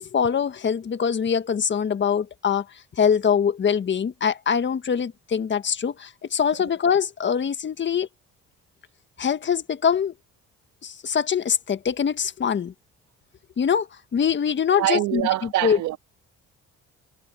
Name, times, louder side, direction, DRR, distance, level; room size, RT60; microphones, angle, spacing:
voice 1, 0.0-2.6 3.0-8.1 9.2-10.1 10.8-12.7 13.6-15.2 15.6-15.8, left 7 dB, 40° left, 1.6 m, -23 dB
voice 2, 14.7-16.0, right 15 dB, 80° right, 1.9 m, -25 dB
cardioid pair, 85°, 29 cm